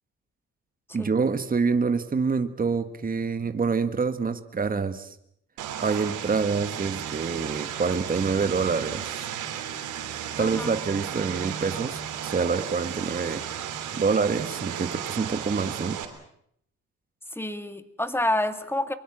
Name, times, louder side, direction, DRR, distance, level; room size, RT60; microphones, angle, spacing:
voice 1, 0.9-5.2 5.8-9.2 10.4-13.4 13.9-16.0, right 5 dB, 30° right, 9 dB, 1.6 m, -26 dB
Vehicle, 5.6-16.1, right 9 dB, 85° right, 3.4 m, -34 dB
voice 2, 10.4-10.8 17.3-18.9, left 1 dB, 10° left, 9 dB, 2.3 m, -28 dB
24.0 x 22.5 x 7.6 m, 0.71 s
cardioid pair, 90°, 30 cm